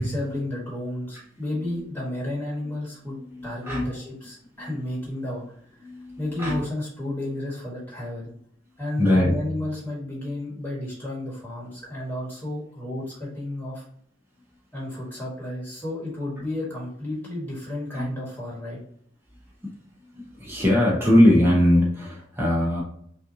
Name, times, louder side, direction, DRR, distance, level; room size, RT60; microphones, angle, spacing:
voice 1, 0.0-5.4 5.8-5.9 6.2-8.3 8.8-13.8 14.7-18.8, left 1 dB, 10° left, -5 dB, 1.5 m, -32 dB
voice 2, 3.2-3.9 4.6-5.1 5.8-6.6 9.0-9.4 17.9-18.1 20.1-22.8, left 1 dB, 10° right, -3 dB, 0.9 m, -21 dB
5.6 x 2.5 x 2.7 m, 0.64 s
head